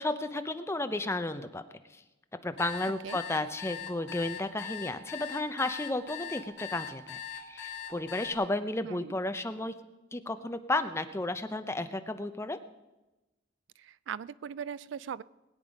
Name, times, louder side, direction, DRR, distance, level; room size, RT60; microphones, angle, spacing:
voice 1, 0.0-1.6 2.4-9.7 10.1-12.6, left 2 dB, 15° left, 9 dB, 0.6 m, -33 dB
sound 1, 2.6-8.3, left 9 dB, 80° left, 2.0 m, -41 dB
voice 2, 8.8-9.1 13.8-15.2, right 7 dB, 85° right, 20 dB, 0.4 m, -39 dB
20.5 x 8.8 x 5.2 m, 1.0 s
head